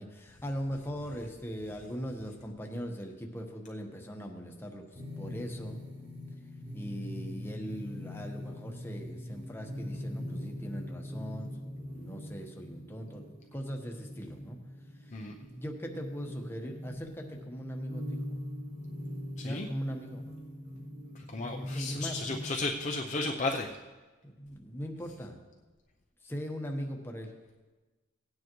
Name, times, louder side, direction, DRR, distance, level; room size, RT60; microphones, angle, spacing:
voice 1, 0.0-5.8 6.7-14.6 15.0-18.2 19.4-20.2 21.7-22.2 24.2-25.4 26.2-27.3, equal, 10° left, 2 dB, 1.1 m, -40 dB
sound 1, 4.9-23.0, left 1 dB, 40° right, 3.9 m, -42 dB
voice 2, 21.1-23.8, left 3 dB, 35° left, 1 dB, 0.6 m, -34 dB
17.5 x 9.2 x 3.1 m, 1.2 s
head